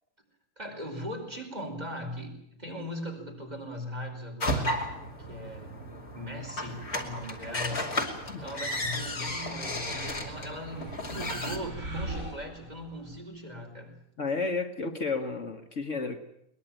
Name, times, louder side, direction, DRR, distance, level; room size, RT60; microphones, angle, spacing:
voice 1, 0.6-4.9 5.2-7.9 8.4-14.0, equal, 30° right, 1 dB, 5.2 m, -39 dB
sound 1, 4.4-11.6, left 1 dB, 90° left, 3.4 m, -34 dB
sound 2, 9.9-13.2, right 2 dB, 65° right, 5.9 m, -40 dB
voice 2, 14.2-16.2, left 4 dB, 55° left, 6 dB, 1.9 m, -32 dB
22.0 x 21.0 x 9.1 m, 0.73 s
omnidirectional pair, 1.5 m